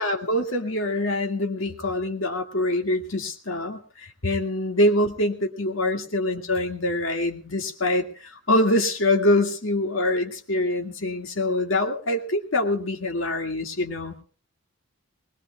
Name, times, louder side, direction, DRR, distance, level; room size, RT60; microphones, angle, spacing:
voice 1, 0.0-14.1, left 1 dB, 65° left, 4 dB, 2.2 m, -25 dB
21.5 x 21.0 x 2.4 m, 0.38 s
head